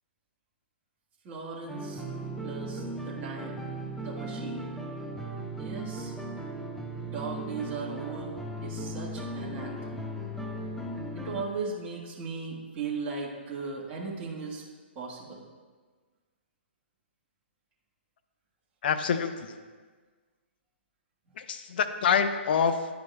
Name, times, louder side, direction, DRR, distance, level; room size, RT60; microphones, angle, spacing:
voice 1, 1.2-2.0 2.4-4.7 5.6-6.1 7.0-8.3 8.6-10.0 11.1-14.6 14.9-15.4, right 4 dB, 25° right, -5 dB, 1.6 m, -37 dB
sound 1, 1.7-11.4, right 1 dB, 5° left, 0.5 m, -37 dB
voice 2, 18.8-19.6 21.4-22.9, left 7 dB, 55° left, 9 dB, 0.6 m, -26 dB
11.0 x 5.2 x 2.3 m, 1.5 s
figure-of-eight pair, 130°, 6 cm